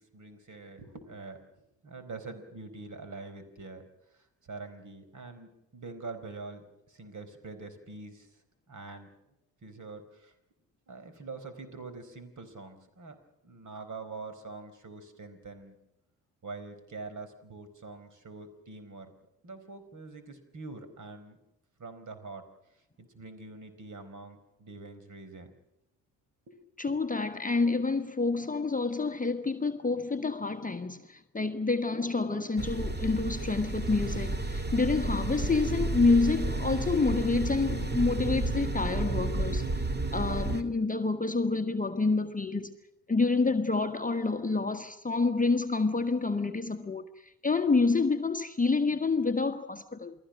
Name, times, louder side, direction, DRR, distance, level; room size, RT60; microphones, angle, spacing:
voice 1, 0.0-9.1 9.6-10.3 10.9-13.2 13.4-15.8 16.4-19.1 19.4-21.4 21.8-22.4 22.7-25.5 26.5-27.0, right 3 dB, 40° right, 4.5 m, -45 dB
voice 2, 26.8-39.7 40.1-42.8 43.1-50.1, left 3 dB, 20° left, 1.4 m, -28 dB
sound 1, 32.6-40.6, right 2 dB, 20° right, 2.1 m, -31 dB
28.5 x 19.0 x 6.4 m
hypercardioid pair, 45°, 45 cm